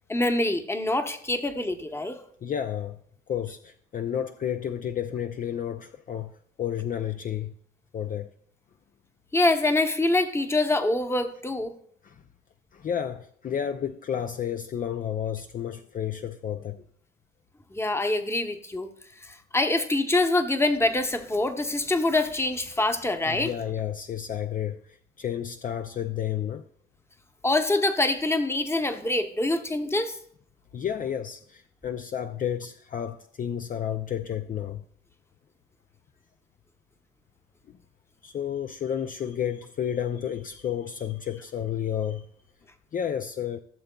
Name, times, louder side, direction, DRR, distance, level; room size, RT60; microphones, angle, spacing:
voice 1, 0.1-2.3 9.3-11.7 17.7-18.9 19.2-23.5 27.4-30.2, left 2 dB, 15° left, 0.9 m, -25 dB
voice 2, 2.4-3.0 3.3-6.3 6.6-7.5 7.9-8.3 12.0-12.2 12.7-16.8 23.3-26.7 30.7-34.8 37.7-37.8 38.2-42.3 42.9-43.6, left 9 dB, 45° left, 0.5 m, -31 dB
15.0 x 6.8 x 2.3 m
cardioid pair, 90°, 20 cm